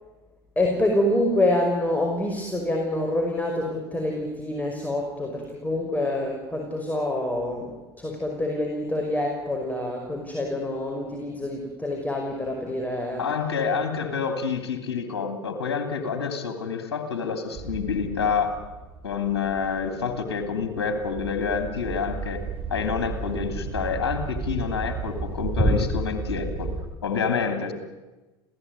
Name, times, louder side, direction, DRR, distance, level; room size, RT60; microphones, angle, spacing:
voice 1, 0.6-13.3 25.6-25.7, left 1 dB, 10° left, 2 dB, 5.5 m, -26 dB
voice 2, 13.2-18.6 19.0-22.4 22.7-26.7 27.0-27.7, left 6 dB, 85° left, 6 dB, 3.0 m, -28 dB
sound 1, 17.5-26.8, right 4 dB, 45° right, 7.6 m, -35 dB
27.0 x 17.0 x 9.7 m, 1.1 s
hypercardioid pair, 75°, 13 cm